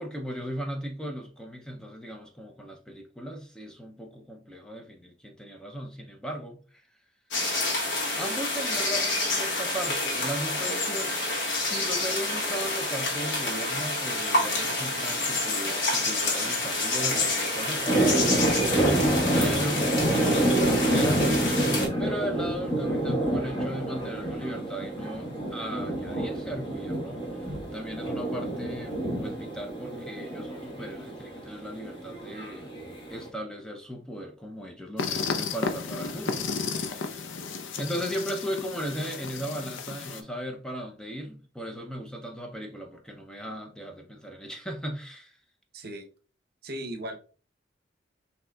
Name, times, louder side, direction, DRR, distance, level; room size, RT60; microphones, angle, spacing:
voice 1, 0.0-6.9 8.2-11.1 11.5-18.3 18.8-21.6 22.0-32.8 33.1-37.3 37.8-45.4, equal, 5° left, 0.5 m, -37 dB
sound 1, 7.3-21.9, left 2 dB, 65° left, 1.3 m, -28 dB
sound 2, 16.9-33.3, right 1 dB, 30° left, 1.3 m, -28 dB
sound 3, 35.0-40.2, left 5 dB, 90° left, 0.6 m, -33 dB
voice 2, 45.7-46.1 46.6-47.2, right 1 dB, 55° right, 0.7 m, -37 dB
6.1 x 2.9 x 2.2 m
head